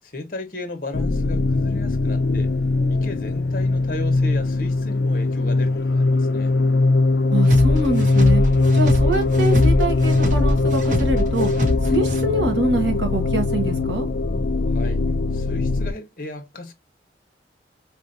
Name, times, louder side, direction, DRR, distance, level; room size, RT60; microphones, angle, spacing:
voice 1, 0.1-2.5 2.9-6.5 14.7-15.0 15.3-16.7, left 2 dB, 50° left, 1.1 m, -35 dB
sound 1, 0.9-15.9, left 3 dB, 65° left, 0.4 m, -20 dB
voice 2, 7.3-8.4 8.7-11.5 11.8-14.1, right 2 dB, 85° right, 1.2 m, -25 dB
sound 2, 7.5-12.5, left 1 dB, 45° right, 0.9 m, -23 dB
4.3 x 2.7 x 2.6 m
head